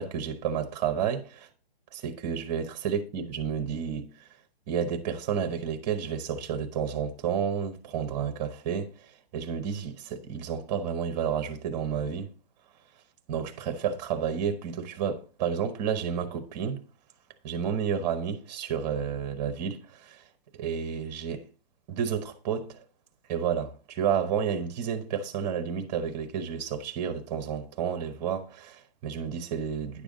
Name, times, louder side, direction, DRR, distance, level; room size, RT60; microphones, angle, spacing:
voice 1, 0.0-1.5 1.9-4.1 4.7-8.9 9.3-12.3 13.3-16.8 17.4-20.2 20.6-21.5 21.9-22.8 23.3-30.0, right 7 dB, 20° right, 0.9 m, -31 dB
9.9 x 7.0 x 3.8 m
hypercardioid pair, 160°, 31 cm